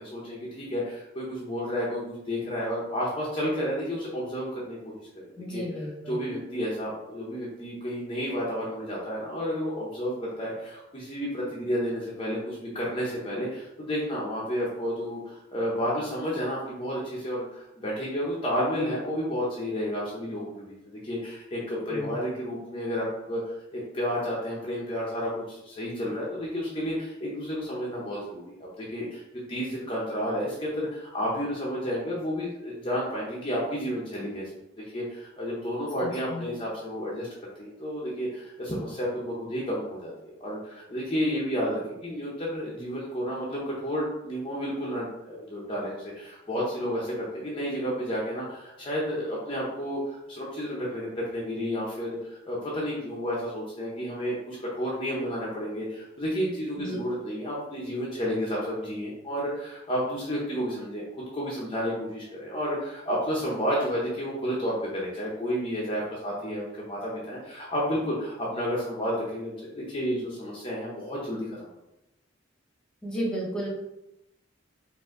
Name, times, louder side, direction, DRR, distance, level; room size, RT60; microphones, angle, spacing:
voice 1, 0.0-5.6 6.1-29.2 29.5-34.4 34.8-37.3 37.6-40.1 40.4-61.0 61.3-71.7, equal, 30° left, -5 dB, 0.8 m, -31 dB
voice 2, 5.3-6.2 21.9-22.1 36.0-36.4 56.8-57.0 73.0-73.7, equal, 5° left, -4 dB, 1.3 m, -33 dB
5.1 x 2.7 x 3.7 m, 0.91 s
head